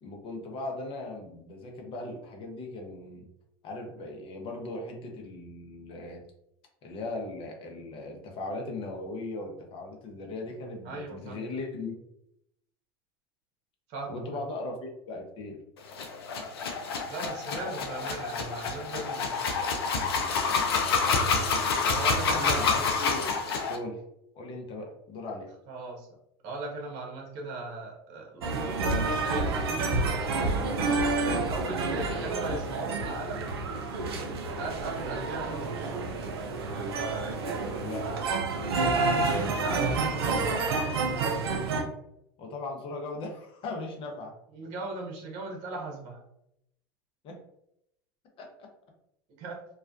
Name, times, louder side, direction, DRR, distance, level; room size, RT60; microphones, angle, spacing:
voice 1, 0.0-3.2 3.6-6.2 6.8-11.9 14.0-15.6 22.2-23.3 23.7-24.0 24.3-25.5 37.8-38.0 42.4-44.3 47.2-47.4 48.4-48.7, left 2 dB, 45° left, 2 dB, 0.7 m, -38 dB
voice 2, 10.8-11.5 13.9-14.5 17.1-19.4 21.9-22.9 25.7-26.1 26.4-30.2 31.4-33.5 34.6-36.2 38.5-40.9 44.5-46.2 49.4-49.6, right 3 dB, 60° right, 0 dB, 0.8 m, -38 dB
sound 1, 15.9-23.8, left 4 dB, 85° left, 0.5 m, -28 dB
sound 2, 28.4-41.8, right 3 dB, 85° right, 0.4 m, -29 dB
2.3 x 2.2 x 2.5 m, 0.78 s
hypercardioid pair, 95°, 13 cm